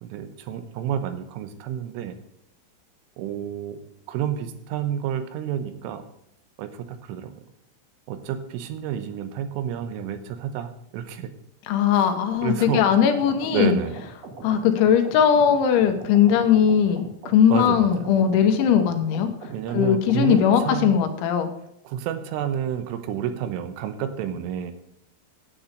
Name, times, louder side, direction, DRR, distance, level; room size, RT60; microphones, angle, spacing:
voice 1, 0.0-2.2 3.2-3.8 4.1-6.0 6.6-7.3 8.1-11.3 11.9-12.0 12.4-12.9 13.5-13.9 17.5-18.1 19.5-20.9 21.8-24.7, right 9 dB, 85° right, 9 dB, 3.5 m, -29 dB
voice 2, 11.7-13.8 14.4-19.3 19.7-21.5, left 8 dB, 75° left, 6 dB, 3.2 m, -19 dB
sound 1, 12.3-21.1, right 3 dB, 45° right, 2.6 m, -41 dB
10.0 x 8.4 x 6.6 m, 0.74 s
omnidirectional pair, 5.7 m